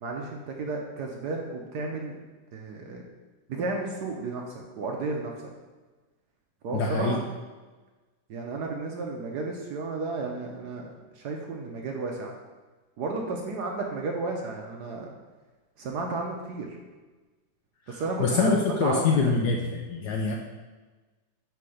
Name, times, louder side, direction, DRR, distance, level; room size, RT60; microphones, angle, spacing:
voice 1, 0.0-2.2 2.5-3.0 3.5-4.4 4.8-5.3 6.6-7.2 8.3-12.3 13.0-15.1 15.8-16.8 17.9-19.3, right 3 dB, 65° right, 0 dB, 1.1 m, -32 dB
voice 2, 6.7-7.2 17.9-20.4, left 4 dB, 75° left, 1 dB, 1.0 m, -25 dB
5.7 x 3.8 x 4.9 m, 1.3 s
omnidirectional pair, 2.2 m